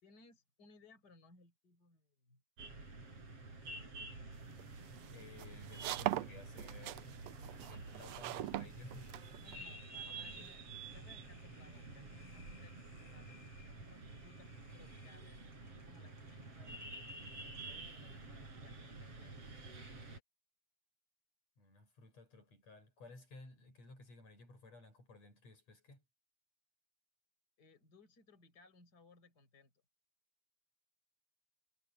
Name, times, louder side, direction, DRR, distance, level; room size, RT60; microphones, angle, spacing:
voice 1, 0.0-2.4 9.4-16.7 17.4-19.5 27.6-29.7, left 3 dB, 30° left, 5.5 m, -64 dB
sound 1, 2.6-20.2, right 3 dB, 50° right, 7.4 m, -50 dB
sound 2, 4.4-9.6, right 15 dB, 75° right, 1.6 m, -41 dB
voice 2, 5.1-7.2 7.7-9.1 10.0-10.5 21.6-26.0, left 3 dB, 60° left, 8.5 m, -56 dB
omnidirectional pair, 3.4 m